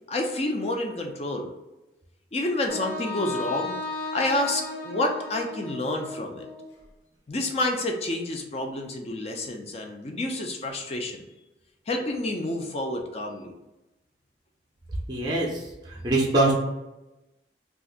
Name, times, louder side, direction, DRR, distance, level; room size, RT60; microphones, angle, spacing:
voice 1, 0.1-1.5 2.3-3.8 4.1-6.5 7.3-11.2 11.9-13.5, left 1 dB, 35° left, 2 dB, 0.4 m, -29 dB
Wind instrument woodwind instrument, 2.7-6.7, left 3 dB, 70° left, 0.7 m, -35 dB
voice 2, 15.1-15.6 16.0-16.5, right 2 dB, 25° right, -2 dB, 0.5 m, -22 dB
2.5 x 2.4 x 3.8 m, 1.0 s
head